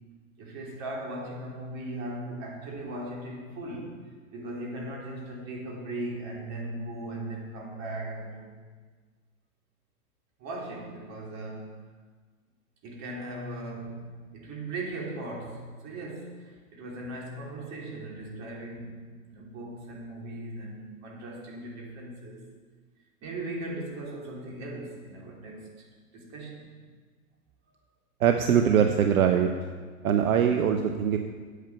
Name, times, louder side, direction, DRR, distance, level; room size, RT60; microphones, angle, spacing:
voice 1, 0.4-4.0 4.3-8.5 10.4-11.7 12.8-19.0 19.3-22.4 23.2-25.9 26.1-26.7, right 1 dB, 40° right, -2 dB, 3.1 m, -38 dB
voice 2, 28.2-29.5 30.0-31.2, right 8 dB, 70° right, 5 dB, 0.9 m, -22 dB
8.9 x 8.4 x 5.7 m, 1.5 s
hypercardioid pair, 110°, 43 cm